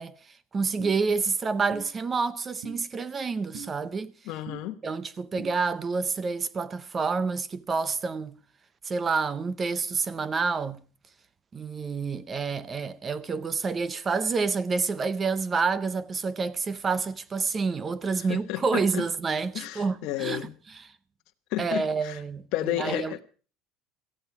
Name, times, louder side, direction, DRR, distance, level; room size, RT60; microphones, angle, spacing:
voice 1, 0.0-4.1 4.8-8.4 8.8-10.8 11.5-20.9 21.6-23.2, right 4 dB, 15° right, 0.7 m, -28 dB
sound 1, 0.8-0.9 1.7-1.9 2.6-2.8 3.5-3.7 4.5-4.6 5.4-5.5, right 5 dB, 60° right, 3.7 m, -40 dB
voice 2, 4.3-4.8 18.2-19.1 19.5-20.5 21.5-22.2 22.5-23.2, left 14 dB, 50° left, 1.0 m, -32 dB
17.5 x 15.0 x 4.8 m
cardioid pair, 175°, 0 cm